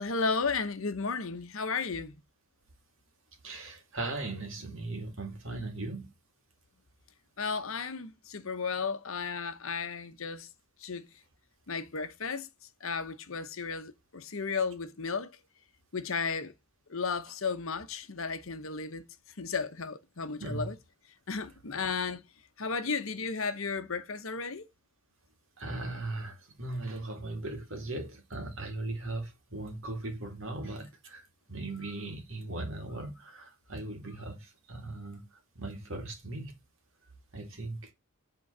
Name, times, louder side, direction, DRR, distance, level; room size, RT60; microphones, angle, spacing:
voice 1, 0.0-2.2 7.4-10.5 10.8-11.1 11.7-12.5 12.8-15.3 15.9-16.5 16.9-19.0 19.4-20.7 21.3-22.2 22.6-24.7, left 4 dB, 65° left, 0.9 m, -34 dB
voice 2, 3.4-6.1 20.4-20.7 25.6-35.3 35.6-36.5 37.3-37.9, right 2 dB, 60° right, 2.3 m, -38 dB
8.3 x 3.9 x 6.7 m
head